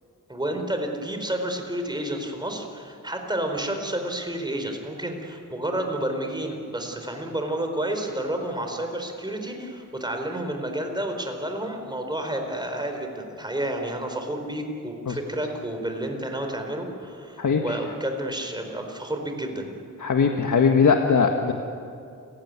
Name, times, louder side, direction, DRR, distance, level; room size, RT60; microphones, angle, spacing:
voice 1, 0.3-19.7, right 1 dB, 15° right, 4 dB, 4.2 m, -30 dB
voice 2, 17.4-17.8 20.0-21.5, left 5 dB, 65° left, 3 dB, 1.7 m, -20 dB
30.0 x 16.0 x 9.6 m, 2.5 s
wide cardioid pair, 105°, 32 cm